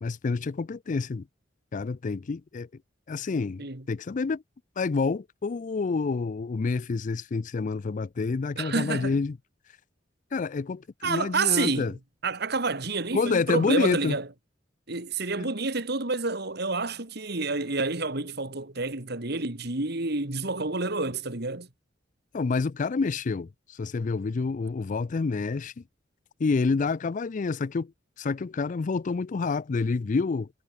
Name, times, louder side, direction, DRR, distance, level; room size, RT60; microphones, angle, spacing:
voice 1, 0.0-1.3 1.7-2.7 3.1-4.4 4.8-9.4 10.3-11.9 13.1-14.2 15.4-15.5 22.3-25.8 26.4-27.9 28.2-30.5, left 4 dB, 45° left, 0.4 m, -28 dB
voice 2, 8.6-9.2 11.0-11.9 12.2-14.3 14.9-21.7, right 3 dB, 60° right, 2.7 m, -29 dB
head